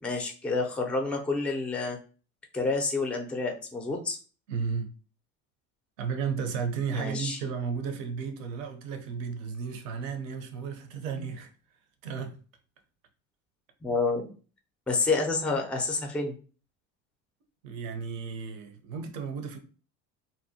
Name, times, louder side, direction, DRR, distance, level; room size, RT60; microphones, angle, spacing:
voice 1, 0.0-2.0 2.5-4.2 6.9-7.4 13.8-14.3 14.9-16.4, left 3 dB, 5° left, 0.3 m, -29 dB
voice 2, 4.5-4.9 6.0-11.5 12.0-12.4 17.6-19.6, right 6 dB, 85° right, 0.7 m, -33 dB
2.6 x 2.1 x 2.7 m
supercardioid pair, 100°, 38 cm